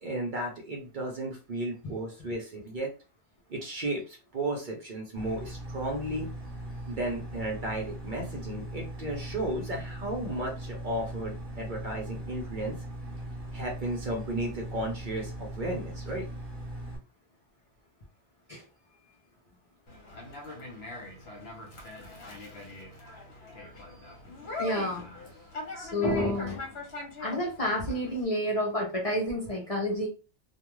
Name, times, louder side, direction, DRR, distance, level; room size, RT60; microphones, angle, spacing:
voice 1, 0.0-2.9 3.5-6.3 6.9-12.8 13.5-16.3 21.3-21.4, right 1 dB, 50° right, 1 dB, 0.6 m, -34 dB
sound 1, 5.1-17.0, right 1 dB, 20° right, 1.1 m, -39 dB
Conversation, 19.9-28.2, left 2 dB, 65° left, 1.0 m, -42 dB
voice 2, 24.6-25.1 25.8-26.6 27.2-30.1, left 1 dB, 40° left, -3 dB, 0.6 m, -29 dB
2.3 x 2.2 x 3.0 m, 0.33 s
omnidirectional pair, 1.2 m